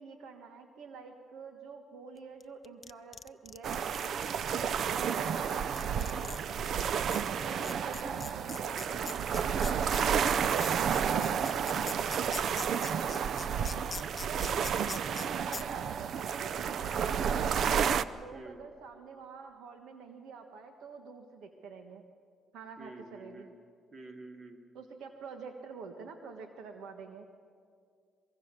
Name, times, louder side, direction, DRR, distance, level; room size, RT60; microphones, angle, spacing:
voice 1, 0.0-4.2 4.9-6.8 7.2-9.4 10.3-12.5 13.3-17.7 18.1-22.0 22.5-23.5 24.7-27.3, right 5 dB, 85° right, 5 dB, 1.4 m, -47 dB
sound 1, 2.4-4.6 5.3-5.4 5.8-6.4 6.8-6.9 7.1-15.3 15.5-15.6, left 5 dB, 35° left, 0.7 m, -42 dB
sound 2, 3.6-18.0, right 7 dB, 65° right, 0.6 m, -31 dB
voice 2, 4.9-5.2 7.5-7.8 13.1-13.4 18.3-18.6 22.8-23.5 23.9-24.6, right 2 dB, 40° right, 3 dB, 3.0 m, -48 dB
23.5 x 23.0 x 6.8 m, 2.2 s
cardioid pair, 90°, 0 cm